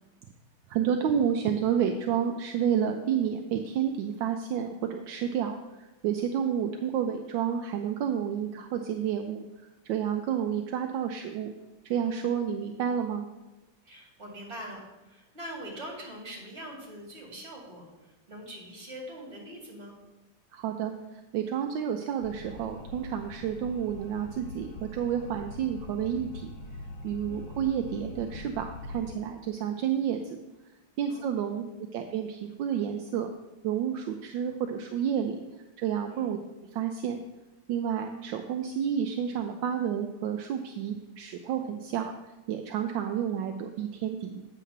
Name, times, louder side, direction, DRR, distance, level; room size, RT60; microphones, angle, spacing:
voice 1, 0.7-9.5 9.8-11.5 11.8-13.3 20.5-20.9 21.3-26.5 27.0-30.4 31.0-33.3 33.6-35.4 35.8-36.4 36.7-37.2 37.7-42.1 42.5-44.5, right 8 dB, 80° right, 5 dB, 1.3 m, -30 dB
voice 2, 13.9-14.8 15.1-17.9 18.3-20.0 27.3-27.5 31.1-31.5 36.1-36.3, equal, 35° right, -3 dB, 2.3 m, -43 dB
sound 1, 22.2-29.1, left 2 dB, 70° left, 1.6 m, -43 dB
8.5 x 3.8 x 6.5 m, 1.1 s
omnidirectional pair, 2.1 m